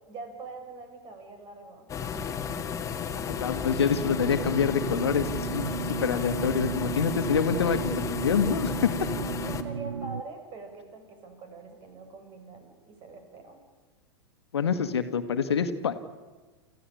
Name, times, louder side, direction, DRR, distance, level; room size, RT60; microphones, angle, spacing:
voice 1, 0.1-1.9 9.4-13.6, right 3 dB, 35° right, 6 dB, 6.2 m, -43 dB
sound 1, 1.9-9.6, left 6 dB, 20° left, 2.0 m, -33 dB
voice 2, 3.3-5.7 6.0-8.9 14.5-15.9, left 7 dB, 70° left, 10 dB, 1.7 m, -26 dB
sound 2, 3.8-10.2, right 8 dB, 80° right, 0.7 m, -35 dB
28.5 x 15.0 x 9.9 m, 1.3 s
figure-of-eight pair, 95°, 14 cm